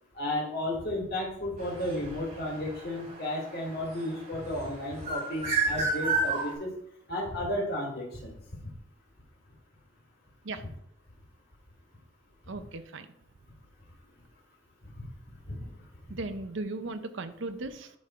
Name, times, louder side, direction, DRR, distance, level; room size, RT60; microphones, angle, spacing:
voice 1, 0.1-6.7 7.1-8.3 8.6-8.7 14.8-15.1 15.4-15.7, left 1 dB, 50° left, -3 dB, 2.1 m, -33 dB
sound 1, 1.6-4.5 4.9-6.5, right 3 dB, 35° right, 3.3 m, -29 dB
voice 2, 12.5-13.1 16.1-17.9, right 2 dB, 65° right, 10 dB, 0.6 m, -37 dB
10.5 x 3.6 x 4.3 m, 0.71 s
head